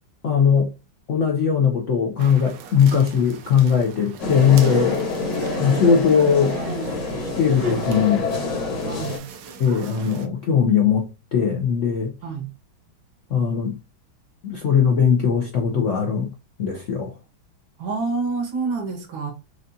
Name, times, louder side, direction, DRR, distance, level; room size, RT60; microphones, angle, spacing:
voice 1, 0.2-0.7 1.1-5.0 5.6-6.6 7.2-8.2 9.6-12.1 13.3-13.8 14.4-16.3 16.6-17.1, left 7 dB, 80° left, 0.6 m, -19 dB
sound 1, 2.2-10.3, right 2 dB, 70° right, 1.2 m, -38 dB
sound 2, 4.2-9.2, left 3 dB, 60° left, 1.8 m, -27 dB
voice 2, 8.8-9.3 12.2-12.5 17.8-19.3, right 4 dB, 90° right, 2.0 m, -27 dB
6.3 x 2.3 x 2.6 m
omnidirectional pair, 2.2 m